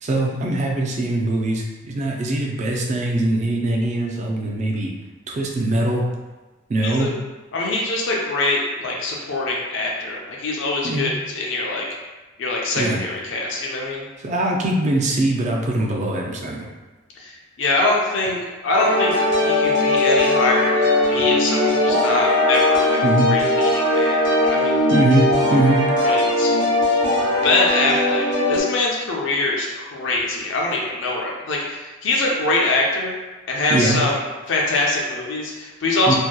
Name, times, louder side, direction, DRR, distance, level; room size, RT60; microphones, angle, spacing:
voice 1, 0.0-4.9 5.3-6.0 6.7-7.1 10.8-11.2 12.8-13.0 14.2-16.7 21.0-21.2 23.0-23.3 24.9-25.9 33.7-34.0 36.1-36.2, right 2 dB, 35° right, -1 dB, 0.3 m, -22 dB
voice 2, 7.5-11.9 12.4-14.1 17.2-24.8 26.0-26.6 27.4-33.1 33.5-34.2 34.5-36.1, left 2 dB, 70° left, -2 dB, 0.4 m, -23 dB
sound 1, 18.7-28.6, left 1 dB, 60° right, 0.9 m, -19 dB
2.7 x 2.2 x 2.2 m, 1.2 s
head